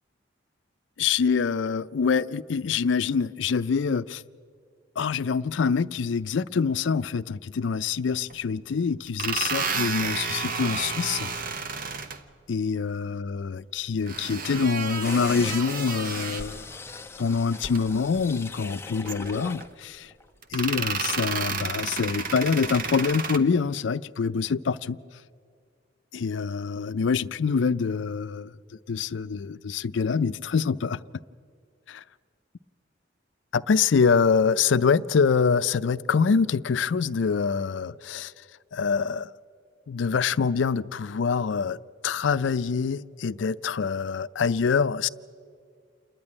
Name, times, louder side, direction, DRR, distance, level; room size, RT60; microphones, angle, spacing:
voice 1, 1.0-4.2 5.0-11.3 12.5-16.7 17.2-20.1 20.5-25.0 26.1-28.5 28.9-31.0 31.9-32.0 33.5-38.3 38.7-39.3 39.9-41.8 42.0-45.1, left 5 dB, 75° left, 0.4 m, -25 dB
sound 1, 8.3-8.4 9.1-12.2 14.1-16.6 17.5-17.8 18.1-18.3 19.0-19.7 20.4-23.4, right 5 dB, 50° right, 0.9 m, -31 dB
sound 2, 15.0-19.7 20.1-20.2, left 3 dB, 15° left, 0.6 m, -39 dB
28.0 x 10.5 x 9.7 m
head